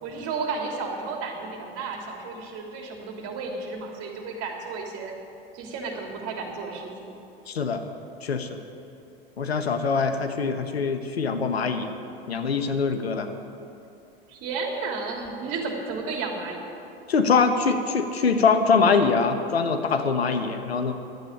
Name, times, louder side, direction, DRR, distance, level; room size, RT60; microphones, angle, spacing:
voice 1, 0.0-5.1 5.5-7.1 14.3-16.7, right 4 dB, 50° right, 1 dB, 3.1 m, -33 dB
voice 2, 7.5-7.8 8.2-8.6 9.4-11.9 12.3-13.3 17.1-20.9, left 5 dB, 90° left, 7 dB, 1.2 m, -23 dB
11.5 x 9.0 x 10.0 m, 2.7 s
hypercardioid pair, 90°, 30 cm